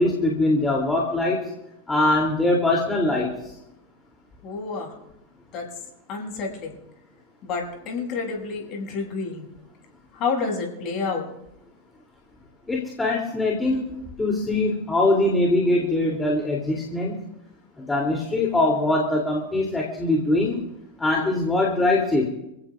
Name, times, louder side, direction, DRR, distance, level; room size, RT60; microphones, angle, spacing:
voice 1, 0.0-1.4 1.9-3.3 12.7-17.1 17.8-20.6 21.0-22.3, left 2 dB, 10° left, -2 dB, 3.0 m, -22 dB
voice 2, 4.4-4.9 5.5-5.6 6.1-6.7 7.4-9.5 10.1-11.3, left 4 dB, 35° left, 0 dB, 7.3 m, -29 dB
29.0 x 16.5 x 2.5 m, 0.87 s
figure-of-eight pair, 90°, 0 cm